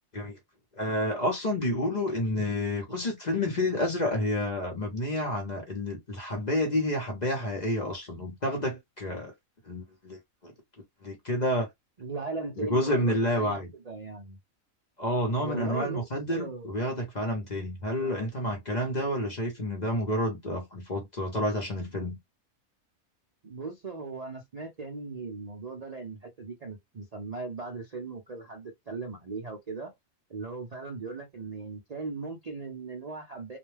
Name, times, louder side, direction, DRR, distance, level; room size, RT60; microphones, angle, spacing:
voice 1, 0.8-9.3 9.7-10.5 11.0-11.7 12.7-13.7 15.0-22.2, left 1 dB, 40° left, 0.7 m, -29 dB
voice 2, 12.0-14.4 15.4-16.8 17.9-18.2 23.4-29.9 30.3-33.6, right 3 dB, 45° right, 0.5 m, -38 dB
2.4 x 2.2 x 3.1 m
omnidirectional pair, 1.4 m